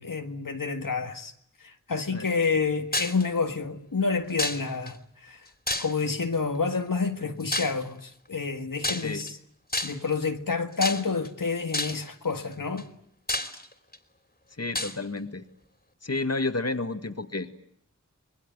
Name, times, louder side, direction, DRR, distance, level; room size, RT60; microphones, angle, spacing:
voice 1, 0.0-1.3 1.6-5.5 5.8-9.4 9.8-12.9, left 4 dB, 90° left, 1.8 m, -29 dB
sound 1, 2.9-3.2 4.4-4.9 5.7-6.2 7.5-7.8 8.8-9.3 9.7-10.1 10.8-11.3 11.7-12.1 12.8-12.9 13.3-14.0 14.7-15.0, left 2 dB, 30° left, 3.0 m, -29 dB
voice 2, 14.6-15.4 16.0-17.6, left 3 dB, 50° left, 1.9 m, -31 dB
26.5 x 22.0 x 9.1 m
wide cardioid pair, 60°, 32 cm